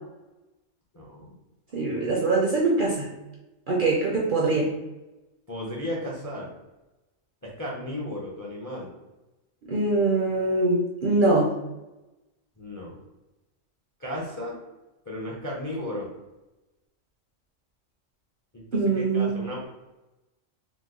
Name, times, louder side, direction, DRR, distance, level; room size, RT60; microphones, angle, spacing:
voice 1, 0.9-1.4 5.5-6.5 7.4-8.9 12.6-13.0 14.0-14.6 15.0-16.1 18.5-18.6 18.9-19.6, left 1 dB, 25° left, -3 dB, 0.4 m, -34 dB
voice 2, 1.7-3.1 3.7-4.7 9.7-11.5 18.7-19.4, right 2 dB, 55° right, -3 dB, 0.6 m, -23 dB
3.0 x 2.2 x 3.6 m, 1.0 s
omnidirectional pair, 1.4 m